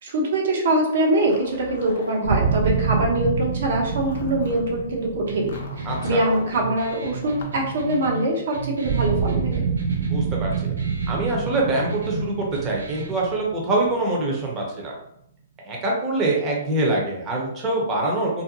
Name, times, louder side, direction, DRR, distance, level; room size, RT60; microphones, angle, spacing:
voice 1, 0.0-9.7, right 1 dB, 65° right, -1 dB, 0.8 m, -23 dB
Zipper (clothing), 1.1-2.6 3.4-4.7 5.5-6.6 7.2-7.6, left 3 dB, 60° left, 0.5 m, -39 dB
sound 1, 2.2-7.2 8.8-14.5, right 6 dB, 45° right, 0.3 m, -27 dB
sound 2, 5.3-13.2, right 2 dB, 90° right, 0.6 m, -35 dB
voice 2, 5.9-6.2 10.1-10.7 11.1-14.9 15.6-18.4, right 2 dB, 25° right, -2 dB, 0.7 m, -24 dB
2.5 x 2.1 x 2.8 m, 0.77 s
hypercardioid pair, 140°, 0 cm